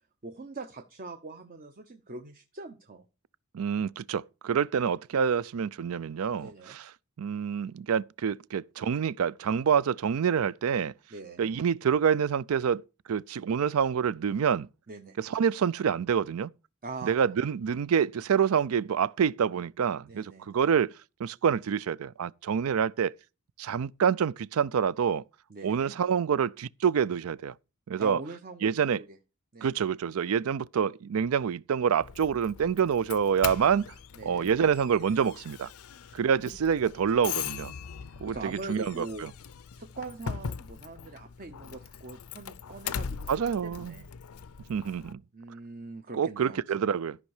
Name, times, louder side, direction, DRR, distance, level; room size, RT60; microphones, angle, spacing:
voice 1, 0.2-3.0 6.4-6.8 11.1-11.5 14.9-15.2 16.8-17.3 20.1-20.7 25.5-25.9 28.0-29.2 29.5-30.0 34.1-34.5 36.1-36.2 38.0-39.3 39.7-44.1 45.3-46.6, right 3 dB, 40° right, 0.8 m, -43 dB
voice 2, 3.5-6.5 7.2-10.9 11.4-12.8 13.1-14.7 15.2-16.5 17.0-20.9 21.2-23.1 23.6-25.2 25.6-27.5 27.9-28.2 28.6-29.0 29.6-33.8 34.2-35.7 36.1-37.7 38.2-39.1 43.3-43.9 44.7-45.2 46.1-47.2, right 7 dB, 70° right, 0.4 m, -27 dB
Doorbell, 32.0-45.1, left 7 dB, 70° left, 0.5 m, -40 dB
13.0 x 5.4 x 4.9 m
head